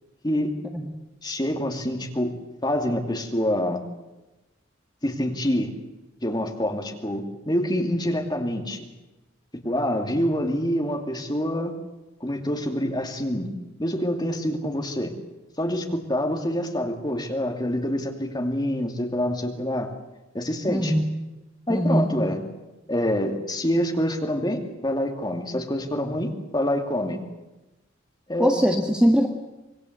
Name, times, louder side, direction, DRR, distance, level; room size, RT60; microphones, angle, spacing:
voice 1, 1.2-2.3 2.6-3.8 5.0-5.7 6.2-8.9 9.6-11.7 12.2-13.5 13.8-15.1 15.6-19.9 20.3-20.9 21.7-22.4 22.9-27.2 28.3-28.6, equal, 20° left, 3 dB, 2.5 m, -26 dB
voice 2, 20.7-21.0 21.7-22.1 28.4-29.3, equal, 5° right, 3 dB, 1.5 m, -21 dB
26.0 x 21.0 x 8.0 m, 1.0 s
head